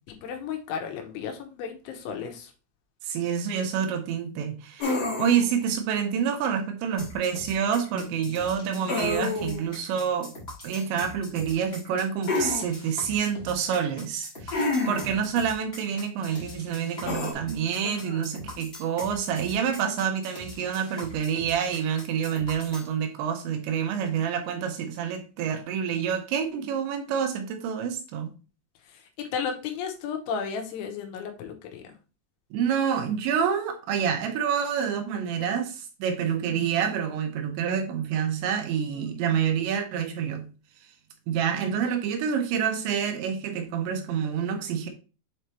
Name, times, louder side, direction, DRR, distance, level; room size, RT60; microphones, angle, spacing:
voice 1, 0.1-2.5 17.8-18.3 28.9-31.9 38.9-39.2, left 6 dB, 80° left, 3.3 m, -34 dB
voice 2, 3.0-10.3 10.6-28.3 32.5-40.4 41.3-44.9, right 7 dB, 75° right, 2.9 m, -28 dB
sound 1, 4.8-5.6 8.9-9.7 12.3-12.7 14.5-15.2 17.1-17.3, left 3 dB, 55° left, 1.9 m, -28 dB
sound 2, 7.0-22.9, left 1 dB, 25° left, 1.3 m, -43 dB
7.6 x 4.4 x 3.3 m
omnidirectional pair, 5.6 m